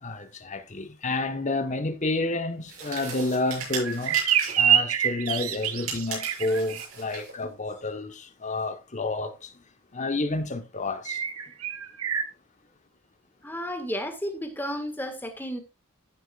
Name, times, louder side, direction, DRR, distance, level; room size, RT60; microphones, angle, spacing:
voice 1, 0.0-4.2 4.6-9.5 9.9-11.2, left 2 dB, 35° left, 1.2 m, -30 dB
sound 1, 2.7-4.7 5.6-7.3, right 5 dB, 65° right, 7.3 m, -37 dB
sound 2, 3.7-6.9 11.1-12.2, right 9 dB, 85° right, 1.2 m, -26 dB
voice 2, 13.4-15.6, equal, 10° left, 1.7 m, -32 dB
15.0 x 7.5 x 2.4 m
head